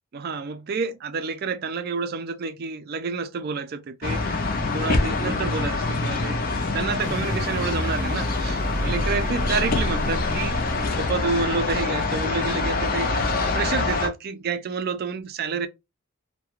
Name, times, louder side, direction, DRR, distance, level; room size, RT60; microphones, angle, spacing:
voice 1, 0.1-4.2 4.7-6.4 6.7-10.6 11.0-13.1 13.5-15.7, right 4 dB, 50° right, 0.4 m, -29 dB
sound 1, 4.0-14.1, left 3 dB, 45° left, 0.5 m, -25 dB
sound 2, 7.0-12.1, equal, 20° right, 0.7 m, -31 dB
2.3 x 2.1 x 2.9 m
head